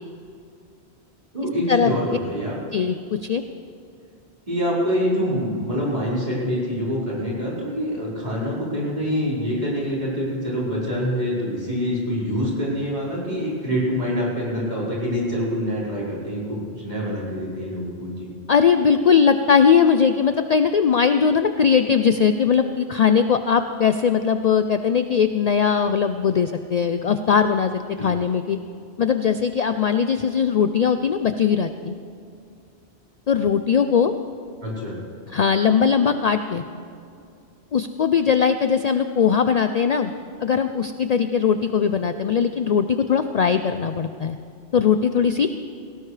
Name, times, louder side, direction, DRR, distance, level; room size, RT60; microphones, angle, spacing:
voice 1, 1.3-2.6 4.5-18.3 28.0-28.1 34.6-35.0, equal, 45° right, -7 dB, 4.9 m, -25 dB
voice 2, 2.7-3.4 18.5-28.6 29.0-31.9 33.3-34.1 35.3-36.6 37.7-40.1 40.4-44.4 44.7-45.5, left 7 dB, 50° left, 9 dB, 0.5 m, -20 dB
18.0 x 17.5 x 3.3 m, 2.5 s
omnidirectional pair, 1.1 m